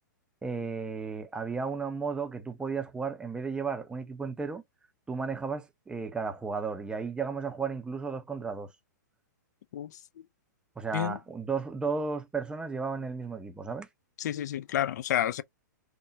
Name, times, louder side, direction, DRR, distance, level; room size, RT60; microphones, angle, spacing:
voice 1, 0.4-4.6 5.1-8.7 10.8-13.9, right 5 dB, 10° right, 0.5 m, -34 dB
voice 2, 14.2-15.4, left 11 dB, 65° left, 0.4 m, -29 dB
3.4 x 2.1 x 2.6 m
hypercardioid pair, 120°, 10 cm